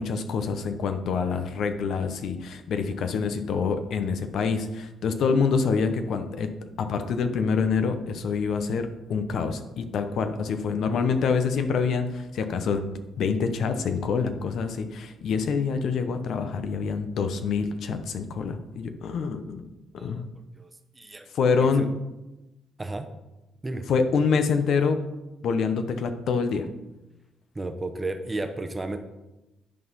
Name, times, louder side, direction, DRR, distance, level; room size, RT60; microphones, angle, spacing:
voice 1, 0.0-6.5 6.8-19.7 19.9-20.2 21.3-21.9 23.9-25.0 25.4-26.7, left 5 dB, 70° left, 8 dB, 0.8 m, -26 dB
voice 2, 21.0-21.3 21.6-21.9 22.8-23.1 23.6-23.8 27.5-29.0, right 2 dB, 20° right, 7 dB, 0.9 m, -33 dB
10.5 x 4.2 x 5.5 m, 1.0 s
cardioid pair, 90°, 0 cm